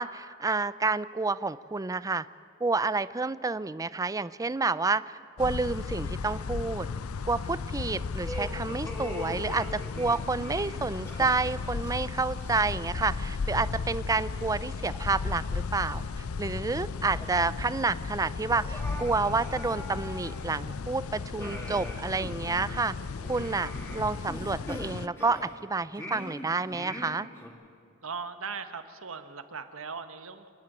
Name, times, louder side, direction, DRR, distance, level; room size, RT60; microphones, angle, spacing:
voice 1, 0.0-2.2 2.6-6.9 7.3-22.9 23.3-27.3, right 3 dB, 15° right, 16 dB, 0.4 m, -29 dB
sound 1, 5.4-25.1, left 4 dB, 85° left, 0.6 m, -35 dB
sound 2, 8.3-13.0 13.2-13.4 14.1-14.2 14.8-16.1 16.5-16.6 17.0-17.6 17.8-17.9 18.5-20.9 21.4-25.6 26.0-27.5, left 1 dB, 10° left, 2.5 m, -42 dB
voice 2, 28.0-30.5, right 5 dB, 70° right, 9 dB, 1.2 m, -39 dB
28.5 x 10.5 x 8.8 m, 2.5 s
head